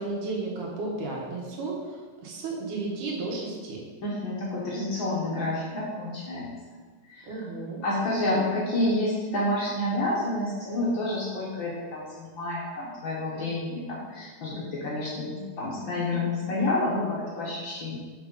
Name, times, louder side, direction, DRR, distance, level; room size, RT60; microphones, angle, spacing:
voice 1, 0.0-3.8 7.2-7.8, right 3 dB, 75° right, -2 dB, 2.9 m, -33 dB
voice 2, 4.0-6.5 7.0-7.4 7.8-18.0, left 1 dB, 70° left, -5 dB, 1.1 m, -29 dB
6.3 x 5.0 x 5.3 m, 1.4 s
omnidirectional pair, 3.8 m